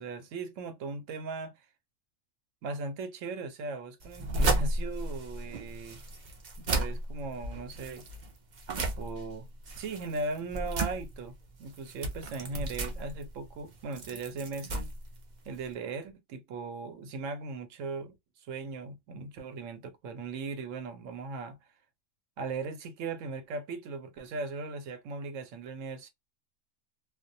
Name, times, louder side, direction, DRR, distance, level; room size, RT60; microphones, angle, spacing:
voice 1, 0.0-1.6 2.6-6.0 6.6-8.0 8.7-9.5 9.8-14.9 15.5-18.2 18.5-21.6 22.4-26.1, right 3 dB, 90° right, 1.0 m, -38 dB
sound 1, 4.0-15.7, right 2 dB, 55° right, 0.5 m, -34 dB
2.3 x 2.1 x 2.6 m
omnidirectional pair, 1.3 m